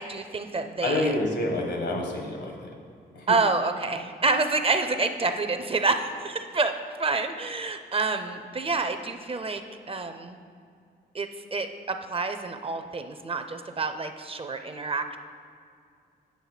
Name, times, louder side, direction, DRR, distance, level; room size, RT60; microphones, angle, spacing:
voice 1, 0.0-1.2 3.3-6.7 7.0-9.6 9.9-10.4 11.1-15.2, right 3 dB, 35° right, 8 dB, 0.5 m, -28 dB
voice 2, 0.8-2.7 3.1-3.4, left 2 dB, 80° left, 2 dB, 1.3 m, -28 dB
8.2 x 6.7 x 4.0 m, 2.3 s
wide cardioid pair, 110°, 18 cm